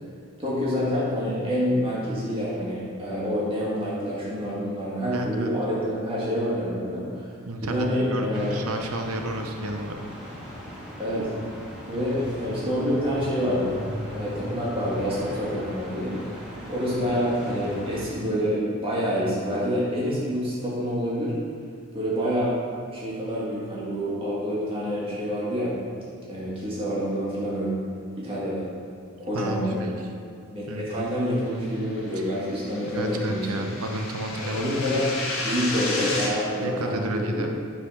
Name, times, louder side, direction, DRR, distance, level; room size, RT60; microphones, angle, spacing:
voice 1, 0.4-7.3 7.6-8.6 11.0-11.3 11.9-13.7 14.1-16.4 16.7-21.3 21.9-22.5 22.9-25.7 26.3-27.7 28.2-28.7 29.2-29.9 30.5-33.7 34.4-35.1 35.4-37.5, equal, 25° right, -7 dB, 2.0 m, -27 dB
voice 2, 5.1-5.5 7.5-10.0 29.3-30.0 30.7-31.0 32.2-32.3 32.9-34.8 36.6-37.5, right 1 dB, 80° right, 4 dB, 0.8 m, -31 dB
sound 1, 8.3-18.0, equal, 5° right, 1.6 m, -38 dB
sound 2, 31.8-36.3, left 2 dB, 65° left, 1.6 m, -32 dB
8.5 x 4.2 x 5.6 m, 2.1 s
head